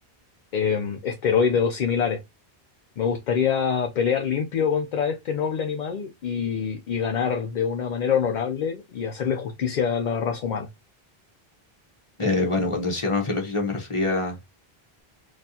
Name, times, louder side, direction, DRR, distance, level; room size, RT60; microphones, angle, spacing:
voice 1, 0.5-2.2 3.0-10.7, left 7 dB, 55° left, 0.6 m, -25 dB
voice 2, 12.2-14.4, left 2 dB, 30° left, 1.2 m, -25 dB
4.3 x 2.4 x 2.7 m
omnidirectional pair, 1.0 m